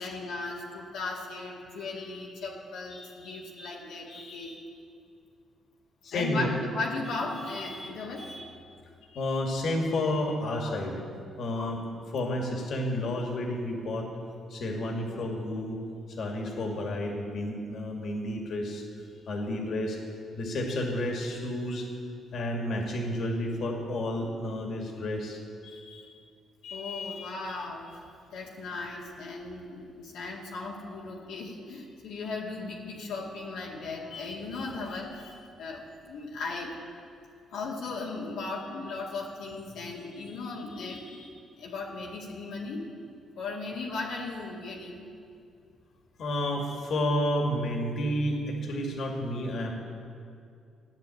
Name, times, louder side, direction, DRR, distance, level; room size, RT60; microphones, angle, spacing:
voice 1, 0.0-4.6 6.1-8.6 9.0-9.4 10.6-11.1 11.6-11.7 25.6-26.2 26.6-36.7 37.5-42.8 43.4-45.1, left 3 dB, 85° left, -4 dB, 2.2 m, -37 dB
voice 2, 6.0-6.5 9.2-11.0 11.4-11.8 12.1-14.1 14.5-15.8 16.2-18.8 19.3-20.0 20.4-21.9 22.3-25.4 46.2-49.7, left 1 dB, 65° left, 1 dB, 2.4 m, -30 dB
13.0 x 9.6 x 8.4 m, 2.4 s
cardioid pair, 90°, 0 cm